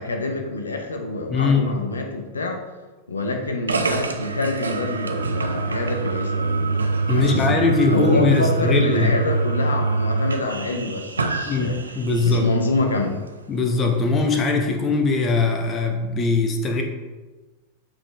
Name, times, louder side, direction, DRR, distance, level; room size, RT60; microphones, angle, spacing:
voice 1, 0.0-2.6 3.1-6.9 7.1-11.8 12.2-13.2, left 2 dB, 75° left, 3 dB, 0.7 m, -26 dB
voice 2, 1.3-1.7 7.1-9.1 11.5-12.5 13.5-16.8, left 3 dB, 25° left, 3 dB, 1.0 m, -21 dB
sound 1, 3.7-12.4, right 3 dB, 75° right, 0.5 m, -25 dB
7.7 x 4.2 x 3.5 m, 1.2 s
figure-of-eight pair, 90°, 0 cm